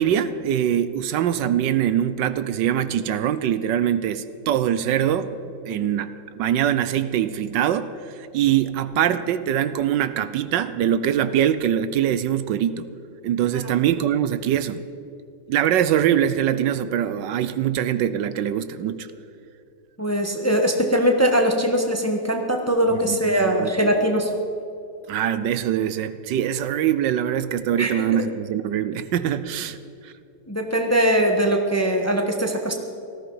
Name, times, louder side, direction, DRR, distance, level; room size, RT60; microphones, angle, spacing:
voice 1, 0.0-5.4 5.7-12.9 13.2-14.8 15.5-19.1 22.9-23.2 23.4-23.7 25.1-29.8 30.0-30.1, right 10 dB, 75° right, 13 dB, 1.3 m, -23 dB
voice 2, 20.0-24.3 27.8-28.2 30.5-32.8, equal, 10° left, 3 dB, 1.0 m, -21 dB
18.0 x 14.5 x 5.6 m, 2.6 s
omnidirectional pair, 2.0 m